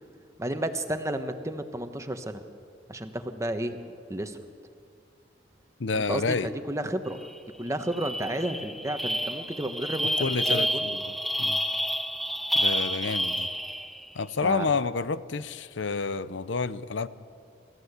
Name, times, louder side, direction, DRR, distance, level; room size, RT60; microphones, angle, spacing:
voice 1, 0.4-2.4 2.9-3.8 4.1-4.4 5.9-7.2 7.6-11.0 14.4-14.7, right 1 dB, 15° right, 7 dB, 1.2 m, -32 dB
voice 2, 5.8-6.5 10.2-11.0 11.4-11.6 12.5-13.5 14.1-17.1, left 4 dB, 80° left, 15 dB, 0.7 m, -29 dB
sound 1, 7.2-7.4 7.7-14.1, equal, ahead, 0.6 m, -29 dB
28.5 x 14.5 x 8.2 m, 2.3 s
head